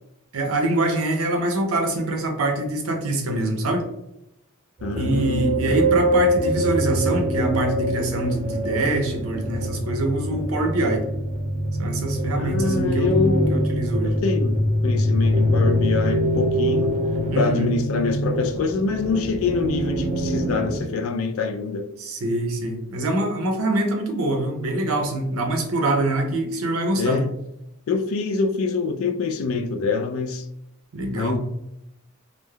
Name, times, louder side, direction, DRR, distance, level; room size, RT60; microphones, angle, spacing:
voice 1, 0.3-3.9 5.0-11.1 11.8-13.2 13.5-14.1 17.3-17.7 22.0-27.2 30.9-31.4, right 1 dB, 85° right, 0.6 m, -24 dB
voice 2, 4.8-5.8 12.4-13.7 14.0-17.0 17.4-21.9 27.0-27.3 27.9-30.5 31.2-31.4, left 4 dB, 70° left, 0.3 m, -25 dB
sound 1, 4.8-20.8, equal, 30° right, 0.5 m, -24 dB
3.1 x 2.1 x 2.2 m
head